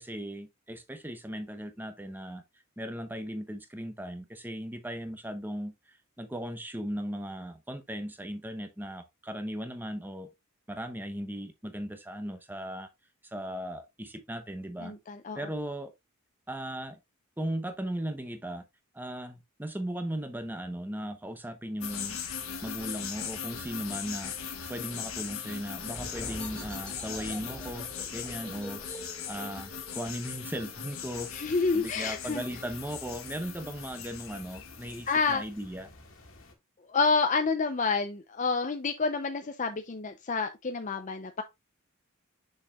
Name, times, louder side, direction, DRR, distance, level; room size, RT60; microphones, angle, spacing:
voice 1, 0.0-2.4 2.8-10.3 10.7-12.9 13.2-14.9 15.3-15.9 16.5-17.0 17.4-18.7 18.9-22.2 22.6-24.3 24.7-28.8 29.3-35.9, equal, 10° right, 0.8 m, -37 dB
voice 2, 14.8-15.4 31.3-32.4 35.1-35.4 36.9-41.4, left 4 dB, 35° left, 0.5 m, -28 dB
sound 1, 21.8-35.1, left 7 dB, 85° left, 1.4 m, -39 dB
sound 2, 25.9-31.3, equal, 5° left, 2.5 m, -45 dB
sound 3, 31.1-36.5, left 4 dB, 70° left, 1.8 m, -50 dB
6.4 x 6.3 x 2.3 m
head